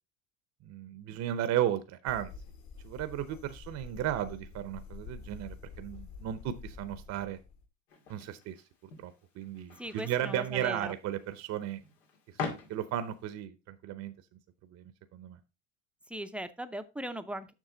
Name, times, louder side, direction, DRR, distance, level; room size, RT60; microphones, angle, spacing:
voice 1, 0.6-2.3 2.8-7.4 8.1-8.6 9.0-11.8 12.7-14.1 14.7-15.4, right 11 dB, 45° right, 12 dB, 0.8 m, -35 dB
sound 1, 2.1-7.7, left 5 dB, 50° left, 1.7 m, -48 dB
sound 2, 7.9-13.3, left 4 dB, 90° left, 2.3 m, -44 dB
voice 2, 9.8-10.9 16.1-17.5, right 1 dB, 5° right, 9 dB, 0.6 m, -39 dB
7.4 x 6.0 x 3.8 m, 0.28 s
supercardioid pair, 100°, 37 cm